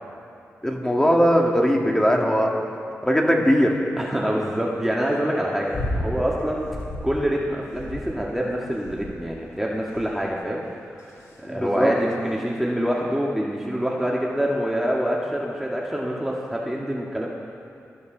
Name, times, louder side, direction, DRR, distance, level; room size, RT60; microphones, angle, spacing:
voice 1, 0.6-2.5 3.0-3.7 11.4-11.9, equal, 10° left, 0 dB, 2.0 m, -19 dB
voice 2, 4.0-6.7 7.0-11.0 11.4-17.3, equal, 5° right, -3 dB, 1.6 m, -26 dB
sound 1, 5.7-6.2 6.6-7.2 7.7-8.3 8.8-9.3 9.9-10.3 11.0-11.4 12.3-12.4, left 1 dB, 70° left, 2.9 m, -32 dB
21.0 x 13.5 x 3.9 m, 2.5 s
cardioid pair, 70°, 5 cm